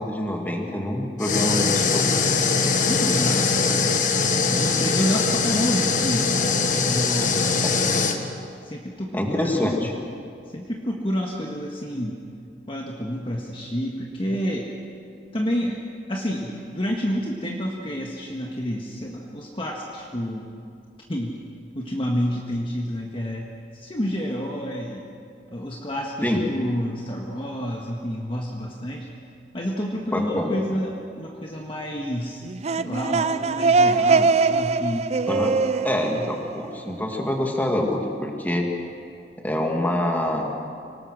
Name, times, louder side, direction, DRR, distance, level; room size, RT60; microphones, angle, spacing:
voice 1, 0.0-2.2 5.1-5.2 9.1-9.9 26.2-26.4 30.1-30.5 35.3-35.6 35.8-38.7 39.4-40.5, left 1 dB, 10° left, 1 dB, 2.3 m, -25 dB
sound 1, 1.2-8.2, left 4 dB, 45° left, 1.4 m, -22 dB
voice 2, 2.9-3.8 4.5-6.6 6.8-7.4 8.6-9.9 10.5-12.2 12.7-14.7 15.3-15.8 16.1-20.5 21.1-21.4 21.7-25.1 25.5-29.1 29.5-32.4 32.8-35.2 36.1-36.3, equal, 30° left, -1 dB, 1.6 m, -29 dB
sound 2, 32.4-37.2, right 4 dB, 35° right, 0.5 m, -22 dB
25.0 x 19.0 x 6.4 m, 2.4 s
head